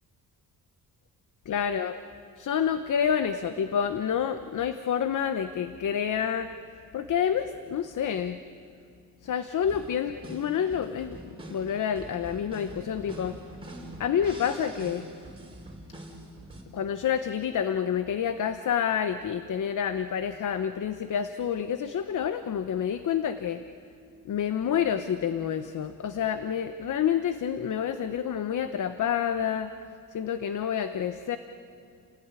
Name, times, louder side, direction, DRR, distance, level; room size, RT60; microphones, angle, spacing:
voice 1, 1.5-2.0 2.4-6.5 6.9-8.4 9.2-13.4 14.0-15.1 16.7-23.6 24.2-29.7 30.1-31.4, left 8 dB, 55° left, 9 dB, 1.0 m, -28 dB
sound 1, 9.6-16.6, right 1 dB, 15° right, 4.8 m, -44 dB
29.5 x 19.0 x 9.8 m, 2.4 s
wide cardioid pair, 140°, 36 cm